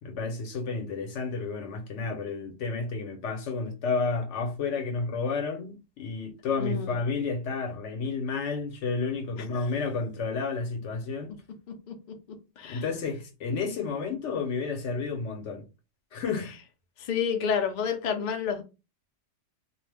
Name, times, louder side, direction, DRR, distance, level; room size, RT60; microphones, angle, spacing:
voice 1, 0.0-11.3 12.7-15.6 16.1-16.6, left 4 dB, 75° left, 1.0 m, -31 dB
voice 2, 6.6-7.0 9.5-9.7 11.9-12.0 12.6-12.8 17.0-18.6, left 7 dB, 55° left, 0.5 m, -29 dB
2.4 x 2.0 x 3.2 m
omnidirectional pair, 1.2 m